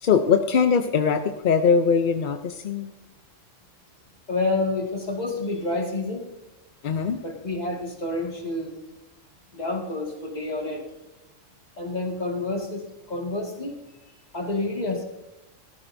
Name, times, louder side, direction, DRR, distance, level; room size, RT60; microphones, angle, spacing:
voice 1, 0.0-2.9 6.8-7.2, left 6 dB, 55° left, 7 dB, 0.6 m, -21 dB
voice 2, 4.3-6.2 7.2-8.8 9.5-10.9 11.8-13.7 14.3-15.0, left 2 dB, 35° left, 0 dB, 2.1 m, -28 dB
15.5 x 13.5 x 2.6 m, 0.94 s
omnidirectional pair, 1.3 m